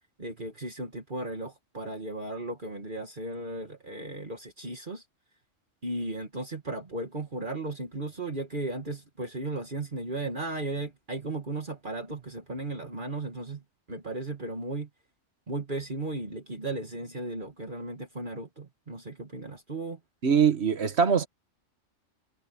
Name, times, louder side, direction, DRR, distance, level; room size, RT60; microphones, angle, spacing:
voice 1, 0.2-5.0 5.8-13.6 13.9-14.9 15.5-20.0, right 2 dB, 45° right, 2.2 m, -35 dB
voice 2, 20.2-21.3, right 7 dB, 65° right, 1.6 m, -22 dB
omnidirectional pair, 1.2 m